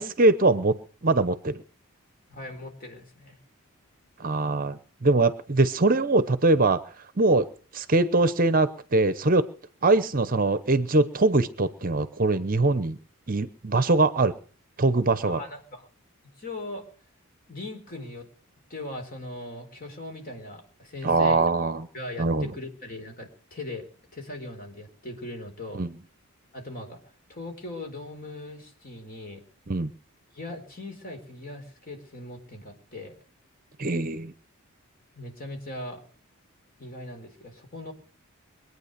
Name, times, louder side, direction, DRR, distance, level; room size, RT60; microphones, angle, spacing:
voice 1, 0.0-1.6 4.2-7.5 7.7-9.5 9.8-13.0 13.3-14.4 14.8-15.4 21.0-21.9 22.2-22.5 25.7-25.9 29.7-29.9 33.8-34.3, right 2 dB, 40° right, 13 dB, 0.8 m, -22 dB
voice 2, 2.3-3.4 15.3-15.9 16.2-16.8 17.5-18.3 18.7-21.4 21.9-23.9 24.1-25.8 26.5-27.0 27.3-29.4 30.3-33.2 35.2-36.0 36.8-37.9, left 2 dB, 40° left, 3 dB, 4.1 m, -39 dB
23.0 x 9.4 x 6.6 m, 0.43 s
head